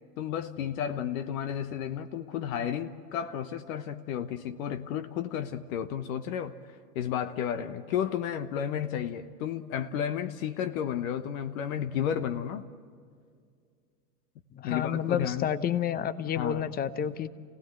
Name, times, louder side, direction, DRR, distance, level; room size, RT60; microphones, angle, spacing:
voice 1, 0.2-6.5 6.9-12.7 14.6-15.5 16.4-16.7, left 9 dB, 60° left, 9 dB, 1.1 m, -32 dB
voice 2, 14.6-17.3, left 9 dB, 20° left, 15 dB, 0.7 m, -30 dB
28.5 x 17.5 x 7.8 m, 2.2 s
hypercardioid pair, 110°, 47 cm